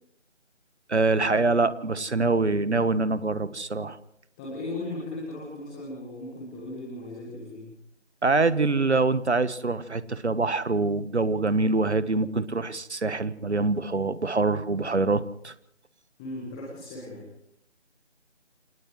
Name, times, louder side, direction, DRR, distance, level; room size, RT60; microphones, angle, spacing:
voice 1, 0.9-4.0 8.2-15.5, right 3 dB, 65° right, 15 dB, 1.4 m, -25 dB
voice 2, 4.4-7.7 16.2-17.2, left 2 dB, 5° left, -4 dB, 1.5 m, -37 dB
29.0 x 28.0 x 3.2 m, 0.74 s
figure-of-eight pair, 160°, 36 cm